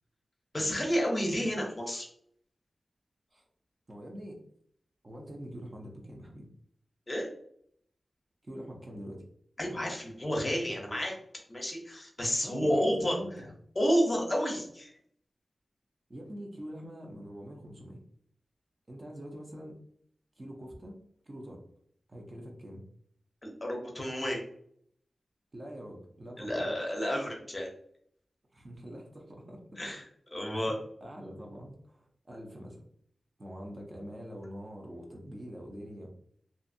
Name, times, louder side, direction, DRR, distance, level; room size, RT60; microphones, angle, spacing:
voice 1, 0.5-2.1 7.1-7.3 9.6-11.1 11.5-13.2 13.8-14.9 23.4-24.4 26.4-27.7 29.8-30.0 30.3-30.8, equal, 30° left, 0 dB, 0.6 m, -30 dB
voice 2, 3.9-4.4 5.0-6.5 8.4-9.2 12.4-13.5 16.1-18.0 18.9-19.8 20.4-21.0 21.3-21.6 22.1-22.8 25.5-26.7 28.5-29.6 30.5-30.7 31.0-32.8 33.4-36.1, equal, 35° right, 0 dB, 0.6 m, -44 dB
2.6 x 2.5 x 2.5 m, 0.66 s
wide cardioid pair, 115°, 0 cm